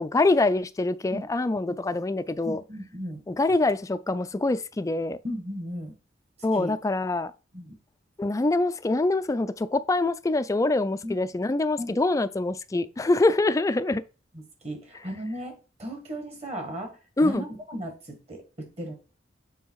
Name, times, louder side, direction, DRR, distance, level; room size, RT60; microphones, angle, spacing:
voice 1, 0.0-2.6 3.3-5.2 6.4-7.3 8.2-14.0 17.2-17.4, left 2 dB, 20° left, 0.3 m, -25 dB
voice 2, 2.5-3.2 5.2-5.9 6.5-6.7 7.5-7.8 11.0-11.2 11.8-11.9 14.3-18.9, equal, 35° right, 1.9 m, -36 dB
7.3 x 3.4 x 4.7 m
head